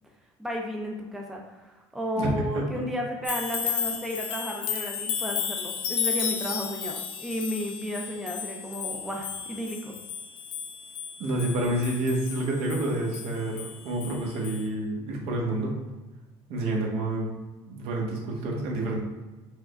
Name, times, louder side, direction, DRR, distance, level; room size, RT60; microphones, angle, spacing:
voice 1, 0.4-10.0, equal, 5° right, 0 dB, 0.5 m, -33 dB
voice 2, 2.2-2.6 11.2-15.7 16.5-17.4 17.7-19.0, right 1 dB, 70° right, -1 dB, 1.0 m, -28 dB
sound 1, 3.2-14.2 14.4-14.6, left 7 dB, 55° left, 0.7 m, -33 dB
4.8 x 2.2 x 3.6 m, 1.2 s
cardioid pair, 130°, 10 cm